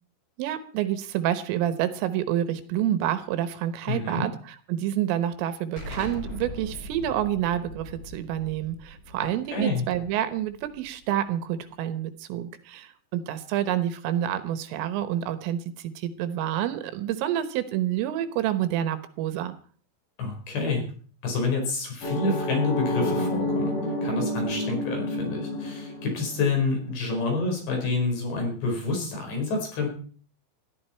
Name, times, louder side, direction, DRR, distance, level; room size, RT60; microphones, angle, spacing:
voice 1, 0.4-19.6, right 11 dB, 80° right, 12 dB, 3.5 m, -28 dB
voice 2, 3.9-4.3 9.2-9.9 20.2-20.8 21.2-23.7 24.0-29.9, left 3 dB, 55° left, 2 dB, 6.9 m, -28 dB
Explosion, 5.8-11.1, left 2 dB, 25° left, 2.0 m, -41 dB
sound 1, 22.0-26.8, left 1 dB, 80° left, 8.2 m, -29 dB
20.5 x 14.0 x 4.4 m, 0.43 s
omnidirectional pair, 6.0 m